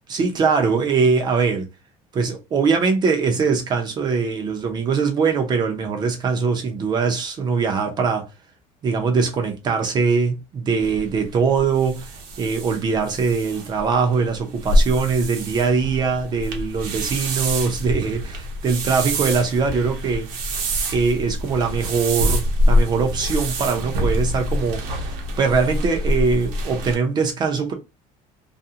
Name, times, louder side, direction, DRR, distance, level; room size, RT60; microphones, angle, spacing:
voice 1, 0.1-1.7 2.1-8.3 8.8-20.3 20.9-27.7, right 5 dB, 30° right, 0.5 m, -22 dB
sound 1, 10.8-26.9, equal, 85° right, 0.8 m, -25 dB
2.4 x 2.1 x 2.6 m
cardioid pair, 165°, 15 cm